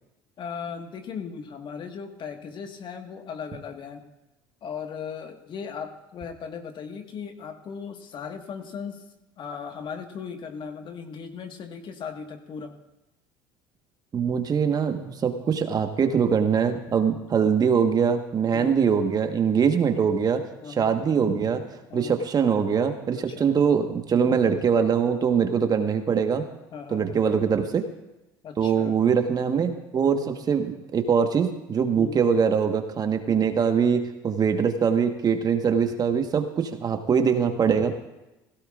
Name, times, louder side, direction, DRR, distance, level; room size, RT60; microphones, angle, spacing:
voice 1, 0.4-4.0 4.6-9.0 9.4-12.7 18.5-18.8 20.6-20.9 21.9-22.2 23.3-23.5 26.7-27.2 28.4-29.0 30.2-30.5 31.9-32.2, left 6 dB, 45° left, 5 dB, 1.7 m, -37 dB
voice 2, 14.1-20.4 20.8-21.7 21.9-26.4 26.9-27.8 28.6-37.9, right 6 dB, 35° right, 6 dB, 1.4 m, -23 dB
16.5 x 16.5 x 2.5 m, 0.98 s
hypercardioid pair, 75°, 11 cm